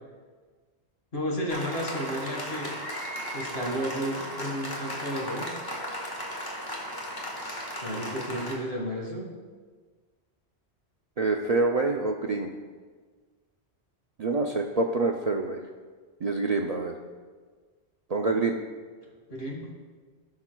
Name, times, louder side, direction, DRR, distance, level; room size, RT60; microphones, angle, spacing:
voice 1, 1.1-2.8 3.3-5.6 7.4-9.3 19.3-19.7, equal, 65° left, -1 dB, 1.9 m, -33 dB
Applause, 1.5-8.6, equal, 20° left, 1.1 m, -36 dB
voice 2, 11.2-12.5 14.2-15.6 16.2-16.9 18.1-18.6, right 3 dB, 55° right, 2 dB, 0.4 m, -26 dB
16.0 x 5.8 x 2.2 m, 1.5 s
omnidirectional pair, 1.1 m